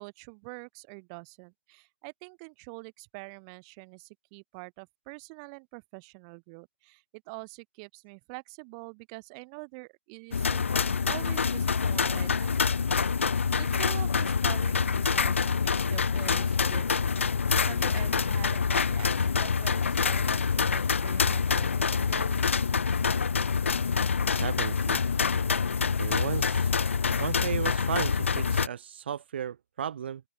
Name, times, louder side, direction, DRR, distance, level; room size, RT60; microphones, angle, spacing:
voice 1, 0.0-10.7 11.1-12.8 13.6-17.1 17.3-22.4, right 35 dB, 30° right, 4.5 m, -45 dB
sound 1, 10.3-28.7, left 5 dB, 65° left, 1.4 m, -26 dB
voice 2, 24.4-25.0 26.0-26.7 27.2-30.2, right 9 dB, 50° right, 3.9 m, -34 dB
open air
figure-of-eight pair, 130°, 7 cm